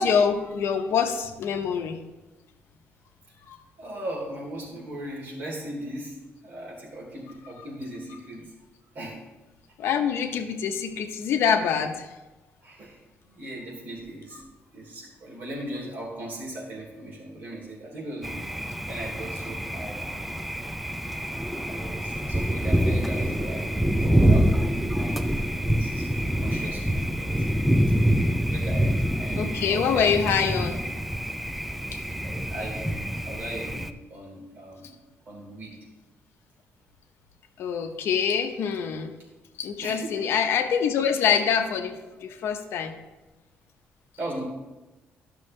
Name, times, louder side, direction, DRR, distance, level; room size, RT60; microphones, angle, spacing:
voice 1, 0.0-2.0 3.5-3.6 9.8-12.1 29.4-30.8 37.6-39.1 39.6-42.9, left 7 dB, 70° left, 6 dB, 0.8 m, -25 dB
voice 2, 3.8-6.2 6.4-8.4 8.9-9.2 12.6-14.4 14.7-18.3 18.9-20.4 21.7-27.3 28.4-30.6 32.2-34.9 35.2-35.7 39.8-40.3 44.2-44.4, right 1 dB, 45° right, -4 dB, 3.2 m, -38 dB
Thunder, 18.2-33.9, equal, 5° right, 0.3 m, -26 dB
12.5 x 6.2 x 3.2 m, 1.1 s
cardioid pair, 165°, 4 cm